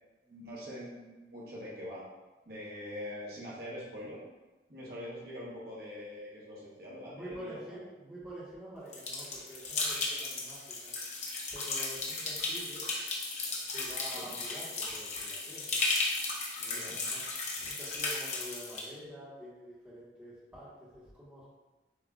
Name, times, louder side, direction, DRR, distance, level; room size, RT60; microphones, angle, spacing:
voice 1, 0.3-2.0 2.4-4.2 4.7-7.6 14.1-14.3 16.7-17.0, left 1 dB, 60° right, -6 dB, 1.1 m, -43 dB
voice 2, 7.1-10.9 11.5-12.9 13.7-15.8 16.6-17.2 17.5-21.5, equal, 10° right, -10 dB, 1.4 m, -47 dB
sound 1, 8.9-18.8, left 3 dB, 40° left, 0.7 m, -35 dB
7.2 x 2.8 x 2.4 m, 1.1 s
head